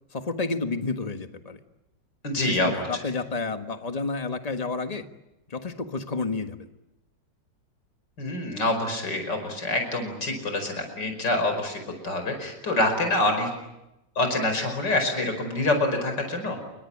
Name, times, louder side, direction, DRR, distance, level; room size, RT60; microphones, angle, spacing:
voice 1, 0.1-1.6 2.4-5.0 5.5-6.7, left 3 dB, 20° left, 7 dB, 1.5 m, -30 dB
voice 2, 2.2-2.7 8.2-13.5 14.2-16.6, left 2 dB, 75° left, 6 dB, 5.8 m, -26 dB
28.0 x 24.0 x 8.6 m, 0.92 s
omnidirectional pair, 1.9 m